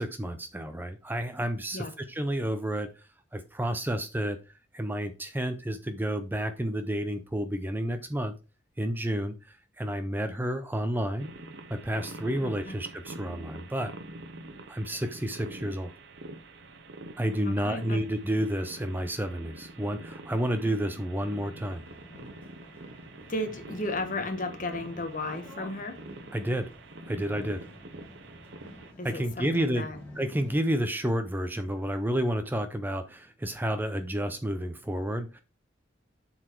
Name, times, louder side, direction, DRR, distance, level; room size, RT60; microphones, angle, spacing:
voice 1, 0.0-4.4 4.7-8.3 8.8-11.3 11.7-13.9 14.7-15.9 17.2-21.8 26.3-26.7 27.1-27.7 29.0-29.9 30.1-35.4, right 1 dB, 10° right, 0.5 m, -30 dB
sound 1, 11.2-28.9, right 2 dB, 65° right, 0.9 m, -46 dB
voice 2, 12.4-12.8 17.4-18.0 23.3-26.0 29.0-30.0, left 2 dB, 45° left, 1.2 m, -34 dB
sound 2, 21.5-30.5, left 1 dB, 10° left, 2.7 m, -50 dB
7.6 x 4.1 x 4.4 m
head